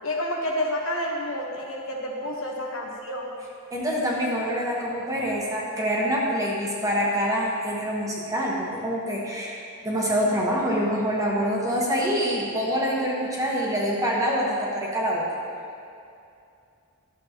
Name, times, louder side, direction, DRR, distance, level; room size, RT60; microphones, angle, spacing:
voice 1, 0.0-3.3, left 1 dB, 60° left, -2 dB, 1.3 m, -29 dB
voice 2, 3.7-9.6 9.8-15.2, equal, 15° right, -4 dB, 1.2 m, -25 dB
12.0 x 7.4 x 3.0 m, 2.6 s
head